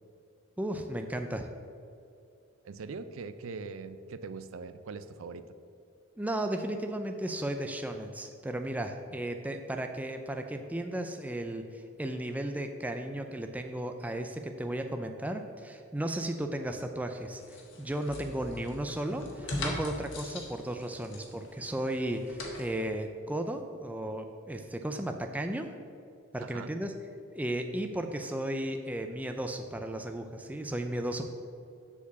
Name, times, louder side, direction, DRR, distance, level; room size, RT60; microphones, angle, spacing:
voice 1, 0.6-1.5 6.2-25.7 26.3-26.9 27.3-31.3, right 1 dB, 5° right, 5 dB, 0.3 m, -35 dB
voice 2, 2.6-5.4 26.4-26.7, right 4 dB, 70° right, 12 dB, 0.4 m, -41 dB
sound 1, 17.4-22.7, left 1 dB, 60° left, 1.4 m, -40 dB
6.9 x 4.7 x 6.9 m, 2.5 s
head